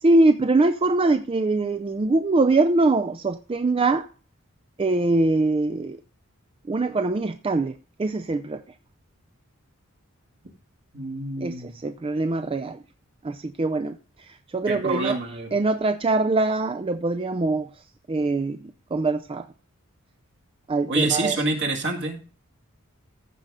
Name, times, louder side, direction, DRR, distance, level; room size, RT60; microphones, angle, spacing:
voice 1, 0.0-4.1 4.8-6.0 6.7-8.6 11.4-12.8 13.2-15.2 15.5-17.7 18.1-19.5 20.7-21.4, right 2 dB, 25° right, 0.4 m, -23 dB
voice 2, 10.9-11.8 14.7-15.5 20.9-22.2, right 2 dB, 55° right, 2.1 m, -26 dB
15.0 x 5.5 x 3.5 m
head